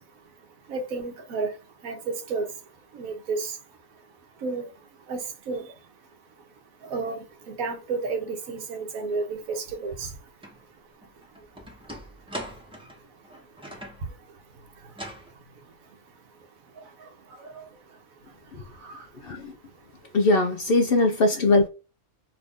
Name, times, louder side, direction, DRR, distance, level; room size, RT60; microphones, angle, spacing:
voice 1, 0.7-1.5 1.8-2.5 2.9-3.5 4.4-4.6 5.1-5.7 6.8-10.1 17.4-17.6 18.8-19.0 21.0-21.1, right 4 dB, 80° right, 1.3 m, -31 dB
sound 1, 10.4-10.6 11.0-14.1 14.9-15.3, equal, 5° right, 0.8 m, -40 dB
voice 2, 19.2-19.5 20.1-21.7, left 2 dB, 60° left, 0.6 m, -21 dB
3.3 x 2.5 x 3.5 m
omnidirectional pair, 1.4 m